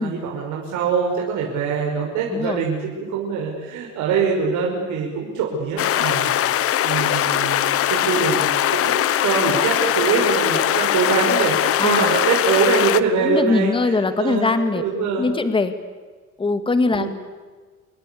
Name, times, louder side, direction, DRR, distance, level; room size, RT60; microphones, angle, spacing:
voice 1, 0.0-6.3 6.8-13.9 14.2-15.3 16.9-17.1, right 5 dB, 70° right, -1 dB, 5.9 m, -23 dB
voice 2, 2.3-2.6 11.8-12.2 13.2-14.8 15.2-15.7 16.4-17.1, left 3 dB, 15° left, 10 dB, 2.1 m, -21 dB
sound 1, 5.8-13.0, left 12 dB, 50° left, 1.1 m, -21 dB
29.0 x 22.0 x 8.6 m, 1.4 s
cardioid pair, 150°, 29 cm